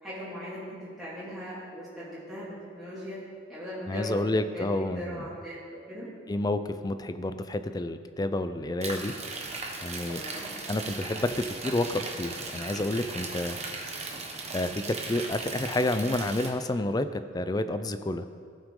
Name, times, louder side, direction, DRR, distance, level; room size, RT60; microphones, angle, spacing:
voice 1, 0.0-3.2 3.5-6.1 10.0-10.5 13.5-13.6, equal, ahead, -12 dB, 2.4 m, -39 dB
voice 2, 3.9-5.2 6.3-9.1 9.8-10.2 10.7-13.6 14.5-18.2, left 2 dB, 20° left, 10 dB, 0.4 m, -29 dB
sound 1, 8.8-16.5, right 3 dB, 35° right, 1.1 m, -37 dB
16.5 x 6.0 x 3.7 m, 2.2 s
head